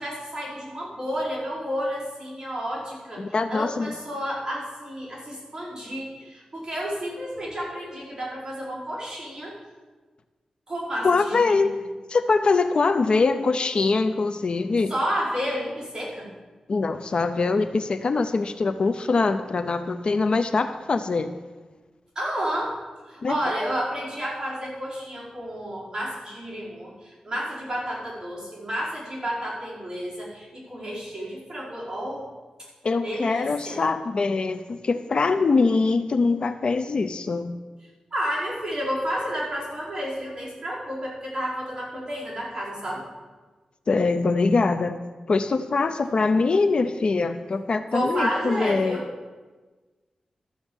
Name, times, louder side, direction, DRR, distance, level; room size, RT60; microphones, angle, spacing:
voice 1, 0.0-9.5 10.7-11.7 14.9-16.3 22.1-22.8 23.1-32.3 33.0-33.8 38.1-43.0 47.9-49.1, equal, 30° right, -7 dB, 5.0 m, -31 dB
voice 2, 3.2-3.9 11.0-11.7 12.1-14.9 16.7-21.3 23.2-23.4 32.8-37.5 43.9-45.0 45.3-49.0, left 4 dB, 55° left, 9 dB, 0.5 m, -23 dB
12.5 x 7.1 x 7.1 m, 1.3 s
wide cardioid pair, 125°, 2 cm